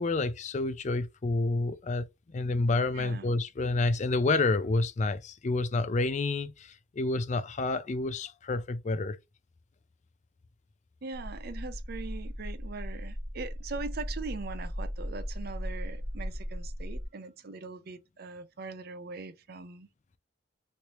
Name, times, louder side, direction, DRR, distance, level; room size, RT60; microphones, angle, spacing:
voice 1, 0.0-9.2, left 3 dB, 40° left, 0.4 m, -29 dB
voice 2, 2.9-3.3 11.0-19.9, right 4 dB, 55° right, 0.5 m, -41 dB
sound 1, 11.1-17.1, equal, 10° right, 0.7 m, -37 dB
3.2 x 2.7 x 2.9 m
head